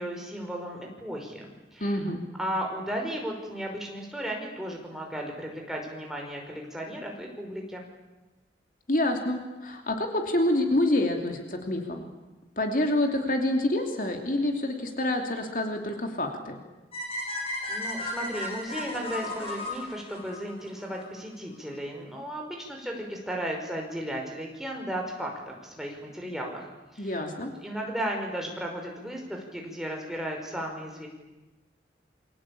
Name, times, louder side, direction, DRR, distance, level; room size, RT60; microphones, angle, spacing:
voice 1, 0.0-2.0 2.4-7.9 17.7-27.2 27.6-31.1, equal, ahead, 0 dB, 5.5 m, -35 dB
voice 2, 1.8-2.2 8.9-12.1 12.6-16.6 27.0-27.5, left 1 dB, 50° left, 3 dB, 2.9 m, -27 dB
sound 1, 16.9-21.0, left 1 dB, 35° left, 7.2 m, -34 dB
28.5 x 24.0 x 8.7 m, 1.1 s
head